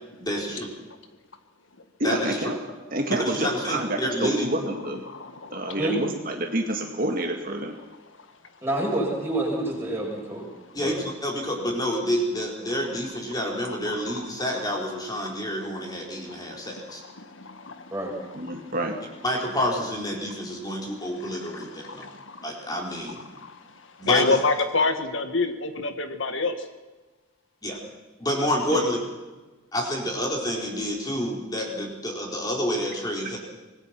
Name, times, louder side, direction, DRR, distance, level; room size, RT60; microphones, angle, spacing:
voice 1, 0.2-0.6 2.0-2.4 3.1-4.5 10.7-17.0 19.2-22.0 22.4-23.3 24.0-24.4 27.6-27.8 28.2-29.0 29.7-33.4, equal, 20° left, 0 dB, 4.3 m, -28 dB
voice 2, 2.0-2.6 2.9-5.0 5.5-7.8 18.3-19.0 28.7-28.8, right 1 dB, 40° right, 3 dB, 2.0 m, -28 dB
voice 3, 5.1-5.8 14.0-14.3 16.3-16.7 17.2-17.9 21.2-22.5 23.3-23.6 24.1-26.5, left 3 dB, 65° left, 8 dB, 1.6 m, -28 dB
voice 4, 8.6-10.5 10.7-10.9 17.9-18.1, right 1 dB, 10° right, -3 dB, 7.7 m, -28 dB
25.5 x 19.5 x 6.0 m, 1.2 s
head